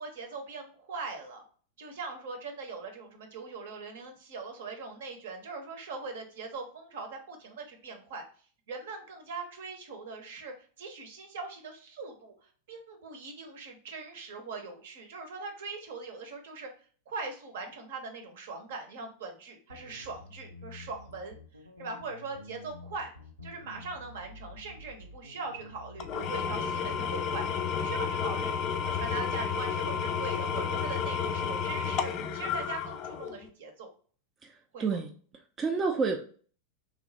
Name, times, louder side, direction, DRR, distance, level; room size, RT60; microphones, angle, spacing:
voice 1, 0.0-1.4 1.8-23.1 23.4-28.5 28.8-33.9 34.7-35.0, right 4 dB, 55° right, 4 dB, 0.8 m, -41 dB
sound 1, 19.7-27.1, left 2 dB, 90° right, 0.5 m, -49 dB
Engine / Tools, 26.0-33.5, left 7 dB, 35° left, 0.4 m, -31 dB
voice 2, 34.4-35.1 35.6-36.2, right 5 dB, 20° right, 2 dB, 0.4 m, -29 dB
3.0 x 2.5 x 3.9 m, 0.43 s
figure-of-eight pair, 90°, 0 cm